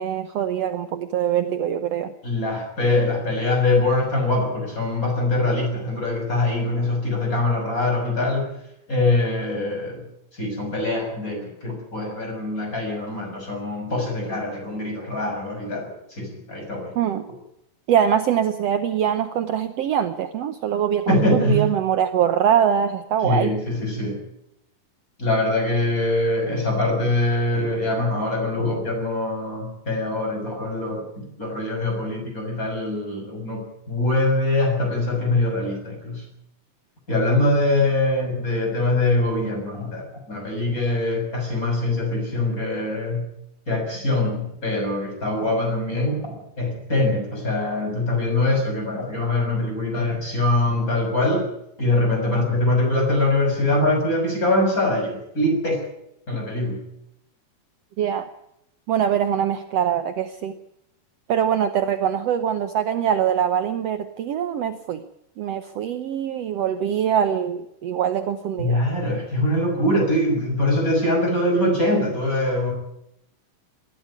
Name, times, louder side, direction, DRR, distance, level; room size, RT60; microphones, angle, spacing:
voice 1, 0.0-2.1 16.9-17.3 17.9-23.5 58.0-58.3 58.9-60.6 61.3-65.0 65.4-68.8, right 9 dB, 80° right, 8 dB, 1.4 m, -23 dB
voice 2, 2.2-8.5 8.9-10.0 10.3-16.9 21.1-21.7 23.2-24.2 25.2-36.2 37.1-43.3 43.7-51.4 51.8-55.9 56.3-56.8 68.6-72.7, left 2 dB, 20° left, 2 dB, 7.0 m, -23 dB
20.0 x 13.5 x 9.7 m, 0.79 s
omnidirectional pair, 4.2 m